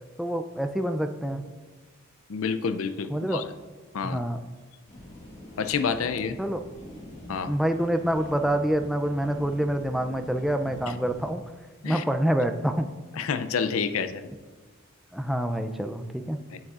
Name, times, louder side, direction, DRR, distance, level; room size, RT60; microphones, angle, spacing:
voice 1, 0.2-1.4 3.1-3.4 4.0-4.4 6.4-6.6 7.4-11.4 11.8-12.9 15.1-16.4, right 1 dB, ahead, 6 dB, 0.4 m, -27 dB
voice 2, 2.3-3.5 3.9-4.2 5.6-6.4 7.3-7.5 10.9-11.0 11.8-12.0 13.1-14.3 16.5-16.6, left 6 dB, 85° left, 10 dB, 0.5 m, -29 dB
sound 1, 4.9-11.3, equal, 35° left, 1.9 m, -44 dB
9.4 x 8.3 x 2.5 m, 1.3 s
head